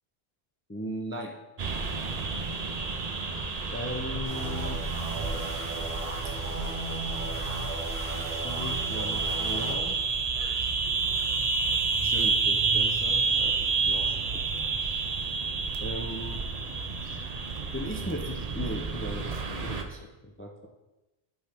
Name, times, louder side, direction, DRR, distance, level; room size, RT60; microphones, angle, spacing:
voice 1, 0.7-1.4 3.7-4.8 8.2-10.0 12.0-13.5 13.9-14.7 15.8-16.4 17.7-20.7, equal, 15° left, 1 dB, 0.5 m, -37 dB
sound 1, 1.6-19.8, right 4 dB, 45° right, 0.7 m, -30 dB
sound 2, 4.2-9.8, right 2 dB, 60° right, 2.2 m, -36 dB
9.0 x 4.3 x 3.5 m, 1.0 s
omnidirectional pair, 1.0 m